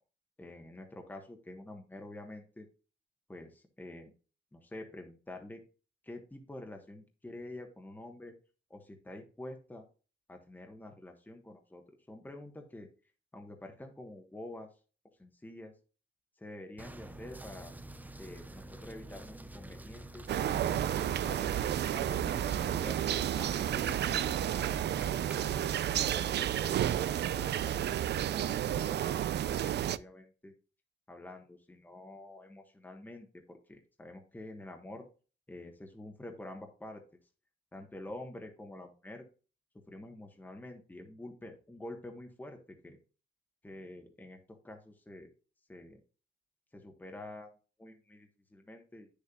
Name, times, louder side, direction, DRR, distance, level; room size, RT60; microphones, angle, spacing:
voice 1, 0.4-2.7 3.3-4.1 4.5-5.6 6.0-8.4 8.7-9.9 10.3-12.9 13.3-14.7 15.2-15.7 16.4-17.7 18.2-23.0 23.4-24.8 25.4-28.0 28.3-30.5 31.1-35.1 35.5-37.0 37.7-39.3 39.7-43.0 43.6-45.3 45.7-46.0 46.7-47.5 47.8-49.1, left 1 dB, 10° left, 3 dB, 1.3 m, -48 dB
sound 1, 16.8-25.4, right 2 dB, 10° right, 0.5 m, -47 dB
sound 2, 20.3-30.0, right 11 dB, 55° right, 0.5 m, -31 dB
9.4 x 6.8 x 2.4 m, 0.36 s
cardioid pair, 125°, 20 cm